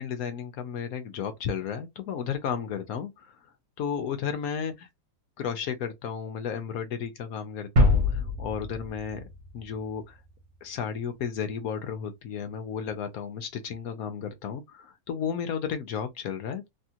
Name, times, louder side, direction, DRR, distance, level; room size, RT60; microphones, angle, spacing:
voice 1, 0.0-3.4 3.8-4.9 5.4-9.3 9.5-10.2 10.6-16.7, left 7 dB, 70° left, 0.9 m, -33 dB
sound 1, 7.8-10.4, left 2 dB, 60° right, 1.2 m, -25 dB
3.3 x 2.3 x 2.7 m
omnidirectional pair, 2.0 m